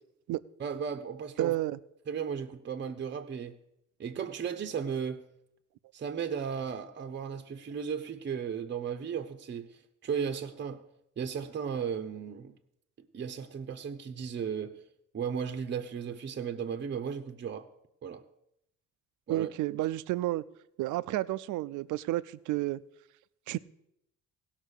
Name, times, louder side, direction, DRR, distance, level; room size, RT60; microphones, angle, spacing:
voice 1, 0.6-1.6 2.1-3.6 4.0-5.2 5.9-10.8 11.2-12.6 13.0-14.8 15.1-17.7 18.0-18.2 19.3-19.5, right 7 dB, 35° right, 0.7 m, -35 dB
voice 2, 1.4-1.8 19.3-20.4 20.8-22.8 23.5-23.6, right 16 dB, 80° right, 0.5 m, -31 dB
16.5 x 5.9 x 6.3 m
cardioid pair, 90°, 30 cm